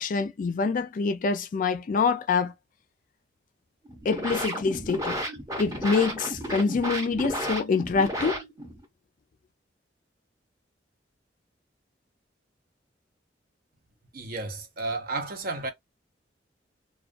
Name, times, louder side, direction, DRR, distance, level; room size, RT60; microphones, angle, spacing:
voice 1, 0.0-2.5 4.1-5.2 5.6-8.4, left 4 dB, 45° left, 0.4 m, -26 dB
sound 1, 3.8-8.8, equal, 20° right, 0.8 m, -33 dB
voice 2, 14.1-15.7, right 3 dB, 55° right, 0.6 m, -32 dB
2.3 x 2.2 x 2.4 m
head